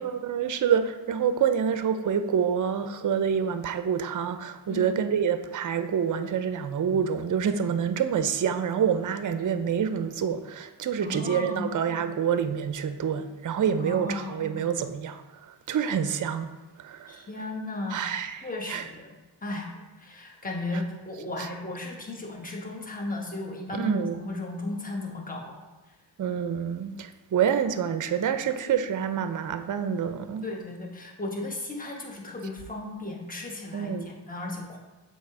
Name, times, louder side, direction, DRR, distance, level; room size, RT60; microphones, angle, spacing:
voice 1, 0.0-17.3 17.9-18.9 23.7-24.2 26.2-30.4 33.7-34.1, right 7 dB, 45° right, 10 dB, 0.5 m, -27 dB
voice 2, 11.0-11.7 13.8-14.5 17.1-18.1 18.4-19.7 20.0-25.6 30.4-34.8, left 2 dB, 20° left, -1 dB, 1.1 m, -35 dB
7.1 x 2.9 x 4.7 m, 1.2 s
cardioid pair, 55°, 44 cm